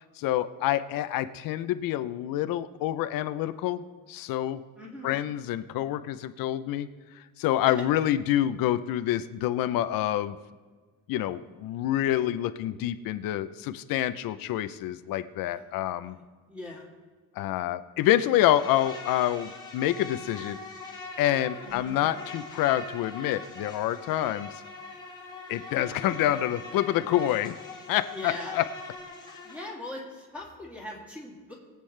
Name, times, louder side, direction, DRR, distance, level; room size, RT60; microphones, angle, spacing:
voice 1, 0.2-4.6 5.0-6.9 7.4-10.4 11.1-16.2 17.4-20.6 21.2-24.5 25.5-27.5 27.9-28.6, left 13 dB, 75° left, 12 dB, 0.6 m, -27 dB
voice 2, 4.8-5.1 7.7-7.8 15.4-16.2 16.5-16.9 21.6-21.9 28.1-28.6 29.4-31.5, left 1 dB, 5° right, -3 dB, 2.6 m, -41 dB
Insect, 18.3-29.7, left 3 dB, 10° left, 1.8 m, -42 dB
22.5 x 8.3 x 3.3 m, 1.5 s
cardioid pair, 160°, 34 cm